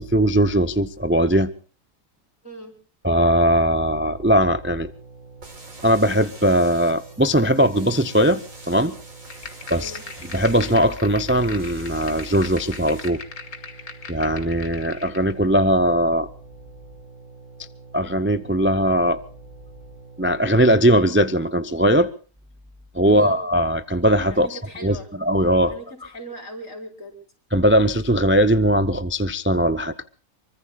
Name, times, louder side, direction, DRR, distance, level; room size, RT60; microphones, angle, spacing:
voice 1, 0.0-1.5 3.0-4.9 5.8-8.9 9.7-10.0 10.3-13.2 14.1-16.3 17.9-19.2 20.2-22.1 22.9-25.0 25.2-25.7 27.5-30.0, equal, 15° right, 12 dB, 0.4 m, -19 dB
voice 2, 2.4-2.7 9.8-10.0 23.1-23.4 24.3-25.1 25.6-27.1, right 1 dB, 60° left, 3 dB, 4.8 m, -38 dB
sound 1, 3.2-20.5, right 4 dB, 85° right, 6.7 m, -46 dB
sound 2, 5.4-13.1, right 2 dB, 65° right, 4.1 m, -45 dB
sound 3, 9.3-15.3, left 5 dB, 75° left, 2.3 m, -39 dB
25.0 x 24.0 x 2.4 m, 0.39 s
omnidirectional pair, 1.5 m